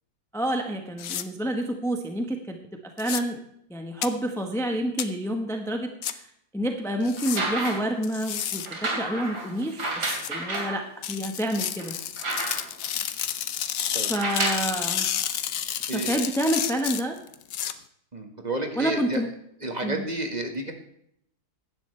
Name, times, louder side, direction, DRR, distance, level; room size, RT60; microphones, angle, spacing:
voice 1, 0.3-2.6 3.0-3.4 3.7-6.3 6.5-9.8 10.3-11.9 14.0-15.1 15.9-17.2 18.7-19.3 19.8-20.1, right 1 dB, ahead, 3 dB, 1.1 m, -28 dB
sound 1, 1.0-1.2 3.0-3.2 4.0-4.1 5.0-5.1 6.0-6.1 7.0-7.4 8.0-8.7 10.0-10.3 11.0-17.7, left 10 dB, 65° left, 1.1 m, -30 dB
sound 2, 7.2-8.0 8.7-10.8 11.4-11.5 11.8-12.9 14.0-14.7 15.7-15.8, right 2 dB, 85° right, 3.4 m, -30 dB
voice 2, 18.1-19.2 19.6-20.7, right 2 dB, 25° right, 3 dB, 1.7 m, -30 dB
16.5 x 11.5 x 3.3 m, 0.72 s
omnidirectional pair, 1.7 m